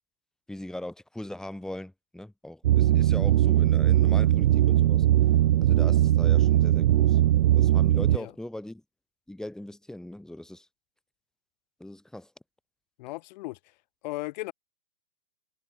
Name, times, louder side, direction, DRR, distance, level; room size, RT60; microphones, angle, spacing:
voice 1, 0.5-5.1 5.6-7.2 7.5-8.8 9.3-10.7 11.8-12.3, left 1 dB, ahead, 4.5 m, -40 dB
sound 1, 2.6-8.2, right 13 dB, 45° right, 1.0 m, -20 dB
voice 2, 13.0-13.7 14.0-14.5, left 20 dB, 40° left, 4.7 m, -36 dB
figure-of-eight pair, 125°, 35 cm